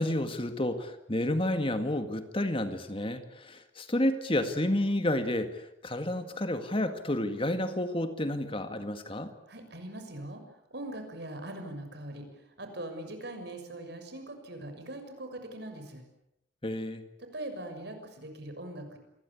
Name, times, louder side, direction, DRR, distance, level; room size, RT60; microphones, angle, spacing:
voice 1, 0.0-9.3 16.6-17.0, left 1 dB, 30° left, 8 dB, 2.0 m, -30 dB
voice 2, 9.5-10.4 10.7-16.0 17.2-19.0, right 1 dB, 60° right, 6 dB, 6.7 m, -41 dB
27.5 x 22.0 x 8.6 m, 0.82 s
head